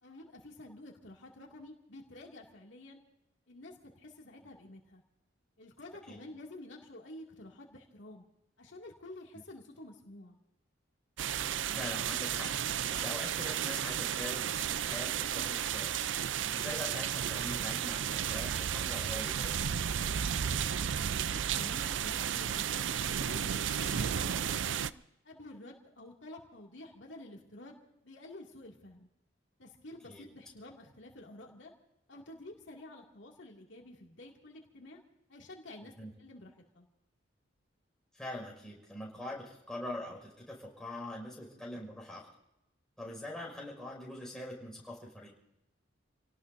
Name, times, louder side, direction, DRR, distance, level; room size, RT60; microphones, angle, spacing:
voice 1, 0.0-3.0 3.5-5.0 5.6-8.2 8.6-10.4 21.2-24.9 25.2-27.8 28.0-29.1 29.6-31.7 32.1-35.0 35.3-35.9 36.2-36.9, left 1 dB, 75° left, -1 dB, 2.4 m, -50 dB
sound 1, 11.2-24.9, right 9 dB, 75° right, 0.5 m, -33 dB
voice 2, 11.8-12.5 12.9-19.6 30.1-30.3 35.8-36.1 38.1-42.3 43.0-45.3, left 1 dB, 5° left, -3 dB, 5.7 m, -43 dB
29.0 x 18.0 x 2.7 m, 0.87 s
head